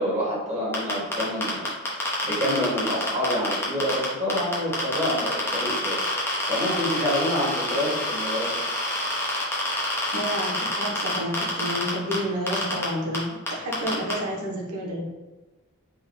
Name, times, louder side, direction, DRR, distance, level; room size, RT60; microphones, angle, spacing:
voice 1, 0.0-1.7 2.2-6.0 6.5-8.6, equal, 30° right, -7 dB, 1.4 m, -27 dB
sound 1, 0.7-4.0 4.3-12.2 12.5-12.8 13.1-13.2 13.5-14.1, left 1 dB, 10° left, 0.8 m, -27 dB
voice 2, 10.1-15.0, equal, 85° right, -2 dB, 1.0 m, -30 dB
3.6 x 2.2 x 3.7 m, 1.2 s
head